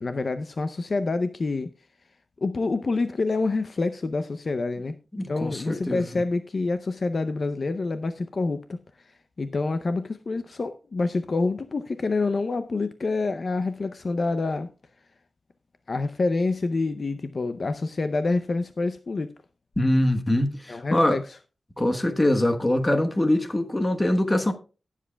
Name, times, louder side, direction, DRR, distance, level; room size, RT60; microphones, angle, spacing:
voice 1, 0.0-1.7 2.4-4.9 5.3-14.7 15.9-19.3 20.7-21.4, left 3 dB, 45° left, 0.5 m, -27 dB
voice 2, 5.1-6.2 19.8-21.2 21.8-24.5, left 1 dB, 15° left, 1.1 m, -23 dB
18.5 x 7.4 x 2.2 m
wide cardioid pair, 170°, 0 cm